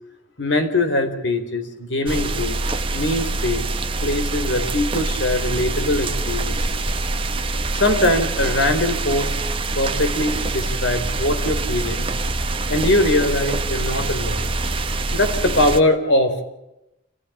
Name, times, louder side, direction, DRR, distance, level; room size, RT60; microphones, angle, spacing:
voice 1, 0.4-2.6 2.9-3.7 4.0-6.8 7.7-9.3 9.8-12.1 12.7-14.5 15.1-16.4, left 1 dB, 75° left, 7 dB, 4.1 m, -21 dB
sound 1, 2.1-15.8, right 2 dB, 25° right, 1.3 m, -25 dB
28.5 x 15.5 x 8.7 m, 0.92 s
head